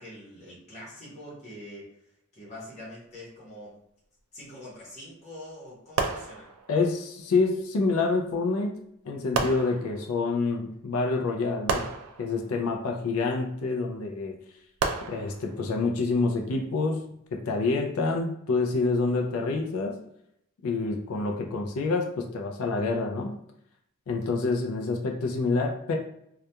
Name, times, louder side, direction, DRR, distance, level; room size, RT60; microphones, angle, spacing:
voice 1, 0.0-1.9 2.3-3.8 4.3-6.5, left 1 dB, 30° left, -7 dB, 0.9 m, -44 dB
sound 1, 6.0-7.0 8.3-8.4 9.3-10.4 11.7-13.0 14.8-15.8 16.6-16.8, right 4 dB, 70° right, 0.4 m, -32 dB
voice 2, 6.7-8.7 9.0-11.8 12.2-14.4 15.1-20.0 20.6-23.3 24.1-25.9, left 3 dB, 70° left, 2 dB, 0.4 m, -27 dB
2.7 x 2.3 x 2.2 m, 0.75 s
head